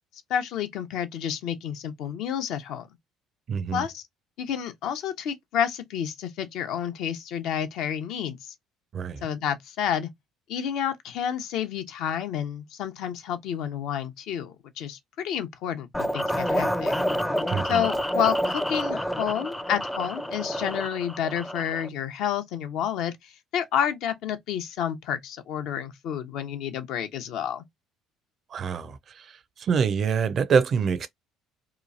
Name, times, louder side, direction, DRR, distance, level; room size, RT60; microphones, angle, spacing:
voice 1, 0.3-2.9 3.7-4.0 4.4-8.5 9.2-10.1 10.5-16.9 17.7-27.6, left 9 dB, 65° left, 0.6 m, -30 dB
voice 2, 3.5-3.8 8.9-9.2 17.5-17.8 28.5-29.0 29.6-31.1, right 6 dB, 50° right, 0.5 m, -25 dB
sound 1, 15.9-21.9, equal, 5° left, 0.4 m, -28 dB
2.9 x 2.3 x 2.6 m
hypercardioid pair, 60°, 0 cm